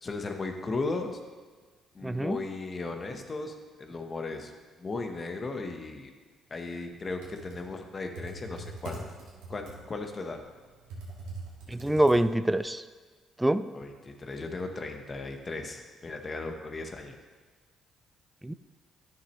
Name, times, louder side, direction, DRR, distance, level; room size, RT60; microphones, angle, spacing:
voice 1, 0.0-1.2 1.9-6.1 6.5-9.0 9.5-10.4 13.7-17.2, left 3 dB, 35° left, 5 dB, 1.0 m, -36 dB
voice 2, 2.0-2.4 11.7-12.8 13.4-13.7 18.4-18.5, right 1 dB, 10° right, 13 dB, 0.4 m, -25 dB
Computer keyboard, 7.0-12.6, right 2 dB, 85° right, 1.7 m, -43 dB
9.7 x 6.6 x 3.1 m, 1.4 s
supercardioid pair, 65°, 0 cm